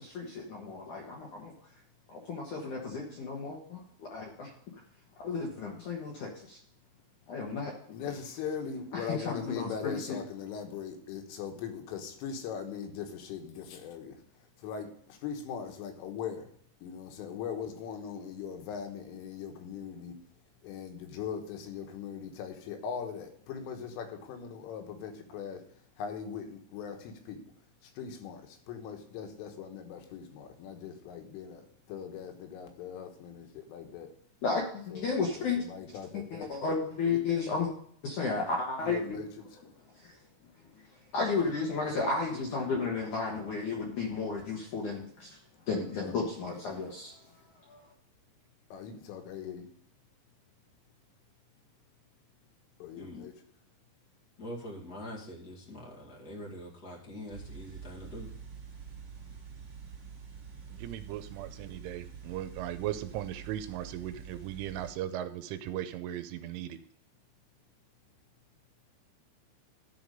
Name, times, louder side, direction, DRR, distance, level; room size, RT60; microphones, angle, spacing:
voice 1, 0.0-1.5 2.1-4.5 5.2-6.6 7.3-7.7 9.1-10.2 34.4-35.6 36.1-37.7 38.0-39.2 40.0-40.1 41.1-45.4 45.7-47.1 47.7-47.8, left 4 dB, 70° left, -2 dB, 1.9 m, -33 dB
voice 2, 7.9-14.2 14.6-16.5 16.8-20.1 20.6-25.6 26.0-27.4 28.0-34.1 34.9-35.1 35.4-36.5 37.1-37.2 38.8-39.3 46.0-46.2 48.7-49.7 52.8-53.3, left 7 dB, 90° left, 4 dB, 3.9 m, -40 dB
voice 3, 54.4-58.3, left 1 dB, 50° left, -4 dB, 1.1 m, -44 dB
sound 1, 57.3-64.9, right 6 dB, 45° right, 2.3 m, -47 dB
voice 4, 60.8-66.8, right 12 dB, 85° right, 10 dB, 3.1 m, -37 dB
13.0 x 4.9 x 5.3 m, 0.63 s
omnidirectional pair, 5.6 m